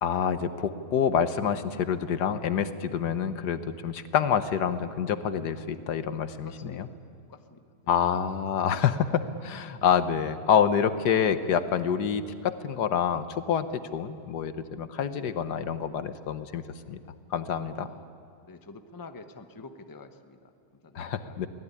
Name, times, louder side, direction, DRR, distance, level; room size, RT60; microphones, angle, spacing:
voice 1, 0.0-6.9 7.9-13.7 13.9-17.0 17.3-17.9 20.9-21.5, left 8 dB, 75° left, 11 dB, 1.5 m, -27 dB
voice 2, 6.4-7.0 7.3-7.6 17.8-18.1 18.5-21.4, left 3 dB, 15° left, 8 dB, 0.8 m, -47 dB
24.0 x 17.5 x 9.8 m, 2.3 s
omnidirectional pair, 1.8 m